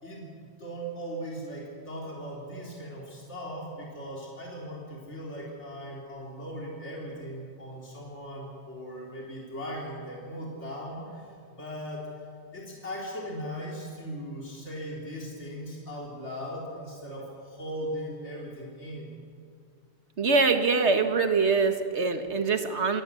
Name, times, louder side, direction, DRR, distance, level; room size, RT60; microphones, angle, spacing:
voice 1, 0.0-12.1 12.5-19.2, equal, 65° left, -3 dB, 3.9 m, -38 dB
voice 2, 20.2-23.0, right 4 dB, 60° right, 7 dB, 1.8 m, -24 dB
25.0 x 18.5 x 7.0 m, 2.2 s
omnidirectional pair, 1.3 m